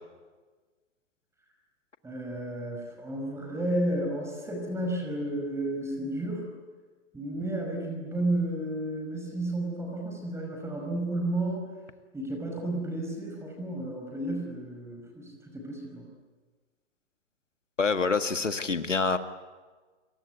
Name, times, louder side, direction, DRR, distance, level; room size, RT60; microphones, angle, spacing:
voice 1, 2.0-6.5 7.1-11.7 12.1-16.1, right 1 dB, 5° right, 2 dB, 5.4 m, -32 dB
voice 2, 17.8-19.2, left 4 dB, 80° left, 9 dB, 1.8 m, -26 dB
30.0 x 23.5 x 8.3 m, 1.4 s
figure-of-eight pair, 110°, 37 cm